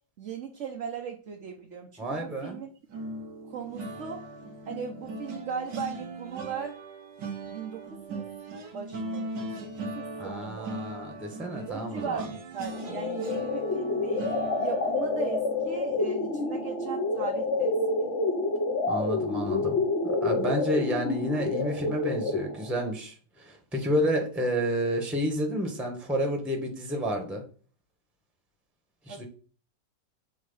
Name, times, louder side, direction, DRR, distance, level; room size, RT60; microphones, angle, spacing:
voice 1, 0.2-2.7 3.5-4.3 4.7-6.8 7.5-8.3 8.7-10.7 11.7-14.3 14.6-18.1 29.1-29.2, right 6 dB, 50° right, 2 dB, 1.0 m, -38 dB
voice 2, 2.0-2.6 10.2-12.3 18.9-27.4 29.0-29.2, equal, ahead, 3 dB, 1.1 m, -30 dB
sound 1, 2.9-18.0 18.4-18.7 19.0-19.2, right 2 dB, 90° right, 2.0 m, -40 dB
sound 2, 12.7-22.7, left 3 dB, 45° left, 1.2 m, -28 dB
7.4 x 3.0 x 5.5 m, 0.41 s
omnidirectional pair, 1.9 m